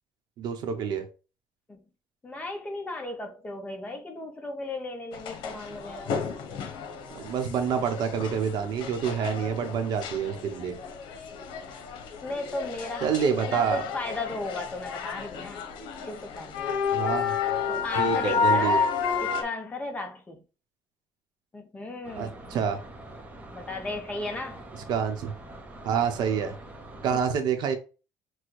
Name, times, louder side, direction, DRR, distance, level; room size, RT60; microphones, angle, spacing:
voice 1, 0.4-1.1 7.1-10.8 13.0-13.8 16.9-17.4 18.0-18.8 22.2-22.8 24.9-25.3 25.8-26.5 27.0-27.8, right 7 dB, 65° right, 0.9 m, -27 dB
voice 2, 2.2-6.2 12.2-15.6 16.0-16.8 17.7-20.4 21.5-22.6 23.5-24.6 27.1-27.2, left 2 dB, 15° left, 0.8 m, -36 dB
sound 1, 5.1-19.4, left 5 dB, 80° left, 0.9 m, -31 dB
sound 2, 22.0-27.2, right 1 dB, 15° right, 0.7 m, -44 dB
6.1 x 2.3 x 3.2 m
cardioid pair, 155°, 8 cm